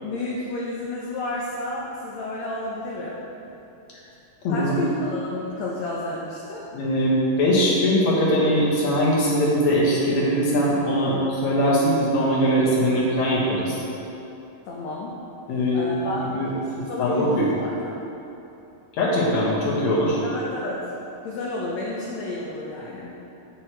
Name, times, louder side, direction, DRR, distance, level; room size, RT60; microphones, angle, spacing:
voice 1, 0.0-3.2 4.5-6.7 14.7-15.1 15.7-18.0 20.2-20.9 21.2-23.2, left 2 dB, 75° left, -5 dB, 1.6 m, -31 dB
voice 2, 4.4-4.8 6.7-13.8 15.5-16.5 17.0-17.5 19.0-20.2, equal, 60° left, -6 dB, 2.4 m, -21 dB
8.4 x 6.3 x 4.5 m, 2.9 s
omnidirectional pair, 4.1 m